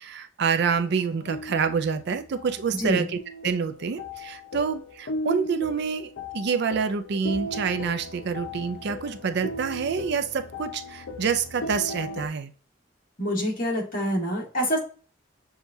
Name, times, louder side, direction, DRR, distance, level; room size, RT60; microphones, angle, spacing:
voice 1, 0.0-3.2 3.4-12.5, right 6 dB, 60° right, 9 dB, 0.4 m, -27 dB
sound 1, 0.6-12.3, left 1 dB, 75° left, 0.7 m, -37 dB
voice 2, 2.7-3.1 13.2-14.8, equal, 50° left, -3 dB, 1.8 m, -26 dB
7.0 x 2.4 x 2.7 m, 0.37 s
head